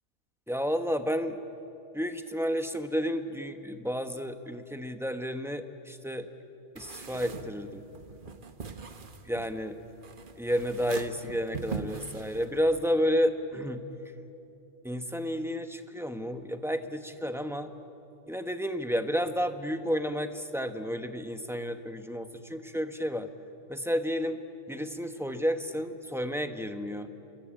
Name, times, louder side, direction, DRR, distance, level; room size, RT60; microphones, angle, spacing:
voice 1, 0.5-1.4 1.9-6.3 6.7-7.8 9.2-9.8 10.4-13.8 14.8-17.7 18.3-23.3 23.7-24.4 24.7-27.1, equal, ahead, 7 dB, 1.1 m, -31 dB
sound 1, 6.7-12.9, right 5 dB, 45° right, 1.3 m, -42 dB
29.0 x 23.0 x 8.9 m, 3.0 s
omnidirectional pair, 1.2 m